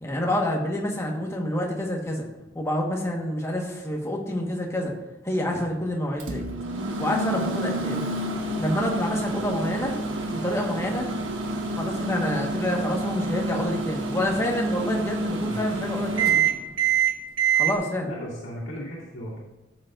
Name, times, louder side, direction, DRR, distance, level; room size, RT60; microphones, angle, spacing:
voice 1, 0.0-2.3 2.5-4.9 5.2-6.5 7.0-8.2 8.6-10.0 10.3-11.1 11.7-16.4 17.5-18.1, left 1 dB, 15° left, -1 dB, 1.3 m, -28 dB
Microwave oven, 6.2-17.7, right 4 dB, 75° right, 1.3 m, -27 dB
voice 2, 18.1-19.4, equal, 65° left, -9 dB, 2.5 m, -36 dB
13.5 x 7.7 x 2.5 m, 0.97 s
head